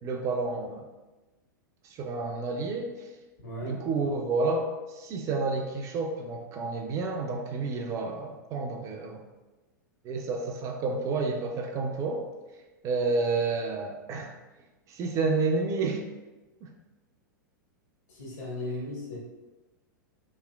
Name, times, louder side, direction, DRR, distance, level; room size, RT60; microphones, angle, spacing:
voice 1, 0.0-0.9 1.8-3.1 3.6-9.2 10.0-12.3 12.8-14.3 14.9-16.0 16.6-16.7, right 3 dB, 30° right, 2 dB, 0.3 m, -30 dB
voice 2, 3.4-3.8 18.1-19.2, left 1 dB, 60° left, -5 dB, 1.4 m, -36 dB
3.0 x 3.0 x 2.3 m, 1.1 s
figure-of-eight pair, 95°, 11 cm